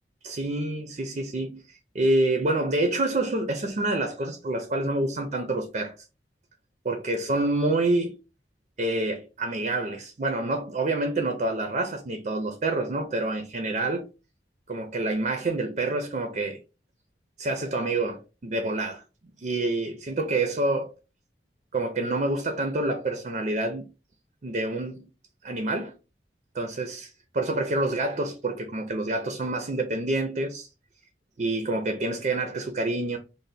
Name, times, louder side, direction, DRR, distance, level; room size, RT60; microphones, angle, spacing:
voice 1, 0.2-6.1 6.8-8.2 8.8-14.0 14.7-16.6 17.4-19.0 19.4-20.9 21.7-23.9 24.4-25.1 25.4-25.9 26.5-30.7 31.4-33.2, right 2 dB, 40° right, 0.4 m, -27 dB
3.3 x 2.1 x 4.0 m
head